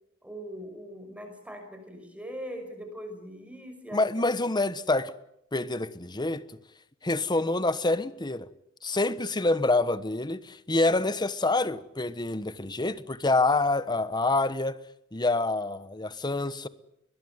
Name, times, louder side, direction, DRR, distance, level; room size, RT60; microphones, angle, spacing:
voice 1, 0.2-4.3, equal, 5° right, 5.9 m, -41 dB
voice 2, 3.9-5.1 5.5-6.4 7.0-8.5 8.8-14.8 15.1-16.7, left 2 dB, 20° left, 1.2 m, -26 dB
21.5 x 21.5 x 9.6 m
head